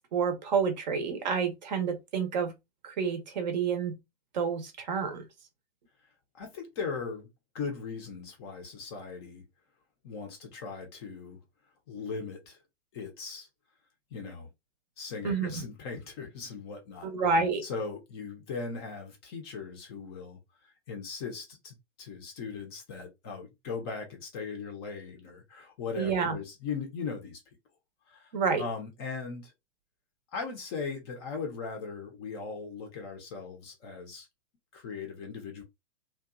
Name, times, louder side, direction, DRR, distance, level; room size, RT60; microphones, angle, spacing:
voice 1, 0.1-2.5 2.8-4.0 4.3-5.2 15.2-15.5 17.0-17.6 26.0-26.3 28.3-28.6, right 5 dB, 40° right, 0.6 m, -29 dB
voice 2, 6.4-7.3 7.5-9.4 10.0-11.4 11.9-12.6 12.9-13.5 14.1-14.5 15.0-17.1 17.6-20.4 20.9-27.4 28.1-28.3 28.6-29.5 30.3-34.3 34.7-35.6, left 5 dB, 20° left, 0.5 m, -38 dB
2.8 x 2.2 x 2.3 m
figure-of-eight pair, 110°, 36 cm